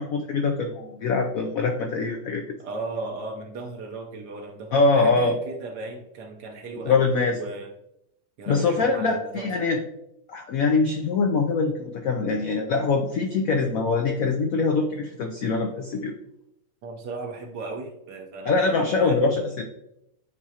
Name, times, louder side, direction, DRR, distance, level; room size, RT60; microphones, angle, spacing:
voice 1, 0.0-2.4 4.7-5.4 6.8-7.4 8.5-9.8 10.3-16.1 18.5-19.6, left 4 dB, 70° left, 3 dB, 0.8 m, -23 dB
voice 2, 2.6-7.7 8.4-9.5 16.8-19.3, right 3 dB, 65° right, 3 dB, 1.3 m, -36 dB
10.5 x 3.6 x 2.8 m, 0.82 s
omnidirectional pair, 2.0 m